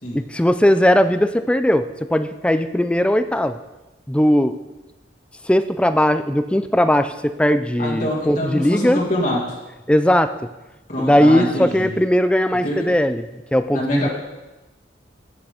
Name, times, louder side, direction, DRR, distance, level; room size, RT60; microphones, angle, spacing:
voice 1, 0.1-3.6 4.1-4.5 5.4-9.0 9.9-10.3 11.0-14.1, equal, 5° left, 10 dB, 0.4 m, -18 dB
voice 2, 7.8-9.6 10.9-12.0 12.6-12.9 13.7-14.1, left 1 dB, 45° left, -5 dB, 1.8 m, -25 dB
10.0 x 8.4 x 5.0 m, 1.1 s
head